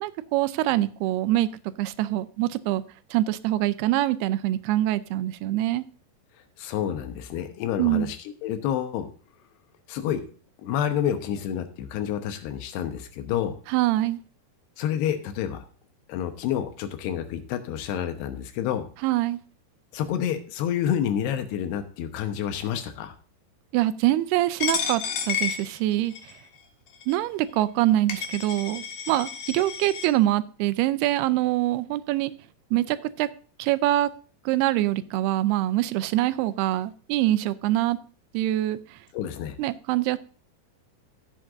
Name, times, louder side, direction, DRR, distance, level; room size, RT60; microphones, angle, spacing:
voice 1, 0.0-2.8 3.1-5.9 7.8-8.1 13.7-14.2 19.0-19.4 23.7-26.1 27.1-32.3 32.7-33.3 33.6-34.1 34.5-38.0 38.3-39.0 39.6-40.2, right 15 dB, 85° right, 14 dB, 2.6 m, -24 dB
voice 2, 6.6-9.1 9.9-10.2 10.6-13.5 14.8-15.6 16.1-18.9 19.9-23.1 39.1-39.6, left 9 dB, 85° left, 8 dB, 3.1 m, -29 dB
Coin (dropping), 24.6-26.4 27.0-27.1 27.8-27.9 28.1-30.1, left 7 dB, 65° left, 3.1 m, -31 dB
15.0 x 7.8 x 2.6 m, 0.40 s
omnidirectional pair, 4.7 m